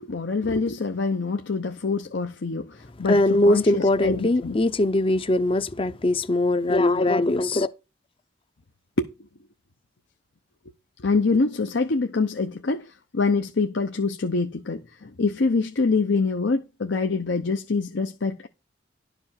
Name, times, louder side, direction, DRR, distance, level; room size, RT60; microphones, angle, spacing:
voice 1, 0.0-4.6 9.0-9.1 11.0-12.9 13.1-18.5, left 4 dB, 70° left, 0.8 m, -25 dB
voice 2, 3.1-7.7, left 2 dB, 30° left, 0.6 m, -21 dB
12.0 x 5.0 x 5.8 m
head